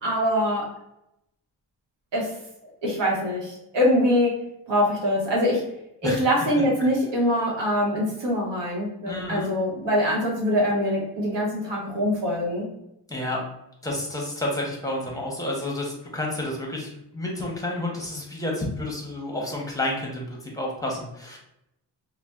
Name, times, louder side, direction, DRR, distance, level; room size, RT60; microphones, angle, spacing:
voice 1, 0.0-0.7 2.1-2.3 2.8-4.4 4.7-5.6 6.0-12.7, equal, 80° right, -3 dB, 0.9 m, -23 dB
voice 2, 9.1-9.5 13.1-13.4 13.8-21.4, left 1 dB, 10° left, -1 dB, 0.6 m, -30 dB
3.9 x 2.0 x 2.3 m, 0.81 s
wide cardioid pair, 130°, 42 cm